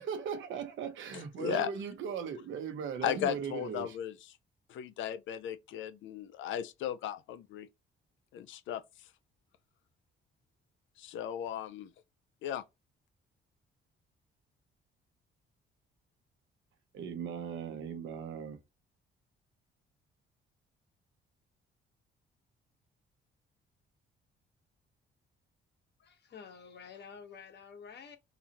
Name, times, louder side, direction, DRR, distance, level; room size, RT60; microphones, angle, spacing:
voice 1, 0.0-4.0 16.9-18.6, right 7 dB, 75° right, 0.8 m, -38 dB
voice 2, 1.1-1.7 3.0-4.4 4.7-7.7 8.3-9.1 11.0-11.9 12.4-12.6, left 10 dB, 75° left, 0.4 m, -36 dB
voice 3, 26.0-28.2, left 6 dB, 60° left, 1.0 m, -50 dB
3.9 x 2.6 x 2.9 m
cardioid pair, 90°, 20 cm